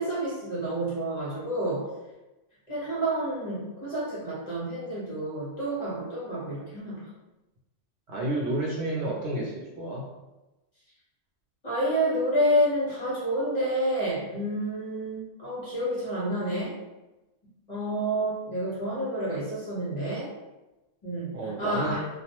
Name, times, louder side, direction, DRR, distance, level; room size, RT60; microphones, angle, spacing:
voice 1, 0.0-1.8 2.7-7.1 11.6-16.7 17.7-20.3 21.0-22.0, right 1 dB, 40° left, -9 dB, 0.9 m, -29 dB
voice 2, 8.1-10.0 21.3-22.1, right 1 dB, 65° right, -4 dB, 0.8 m, -30 dB
2.3 x 2.1 x 2.8 m, 1.0 s
omnidirectional pair, 1.3 m